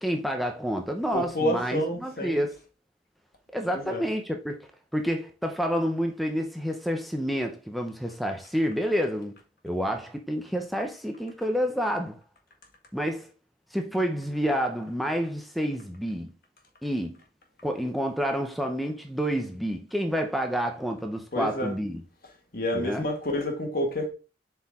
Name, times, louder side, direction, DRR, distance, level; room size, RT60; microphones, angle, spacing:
voice 1, 0.0-2.6 3.5-4.6 4.9-9.4 9.6-12.2 12.9-13.3 13.7-16.3 16.8-17.2 17.6-22.0 22.7-23.1, equal, ahead, 0.7 m, -29 dB
voice 2, 1.1-2.4 3.7-4.0 21.3-21.7 22.5-24.1, left 1 dB, 55° left, 1.8 m, -28 dB
7.7 x 4.5 x 3.6 m
head